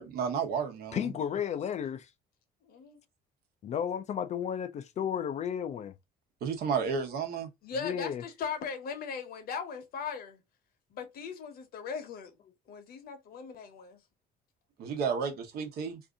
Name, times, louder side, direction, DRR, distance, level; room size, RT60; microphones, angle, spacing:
voice 1, 0.0-1.1 6.4-7.5 14.8-16.0, right 6 dB, 70° right, 0.9 m, -32 dB
voice 2, 0.9-2.1 3.6-5.9 7.8-8.2, left 8 dB, 45° left, 0.4 m, -33 dB
voice 3, 2.6-3.0 7.6-10.4 10.9-12.3 12.7-14.0, left 6 dB, 65° left, 0.9 m, -39 dB
2.7 x 2.5 x 3.5 m
cardioid pair, 110°, 17 cm